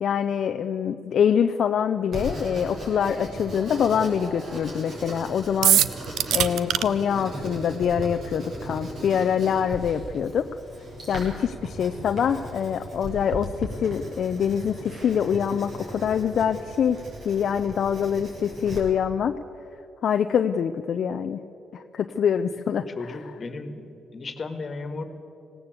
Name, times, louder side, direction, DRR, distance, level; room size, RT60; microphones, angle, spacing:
voice 1, 0.0-5.8 6.3-10.5 11.1-19.4 20.0-21.4 21.7-22.9, left 8 dB, 60° left, 7 dB, 0.6 m, -25 dB
Writing, 2.1-18.8, right 1 dB, 55° right, 6.8 m, -37 dB
sound 1, 5.6-6.8, right 11 dB, 80° right, 0.6 m, -20 dB
voice 2, 23.0-25.0, left 3 dB, 40° left, 8 dB, 1.8 m, -35 dB
19.0 x 17.5 x 8.2 m, 2.9 s
cardioid pair, 90°, 0 cm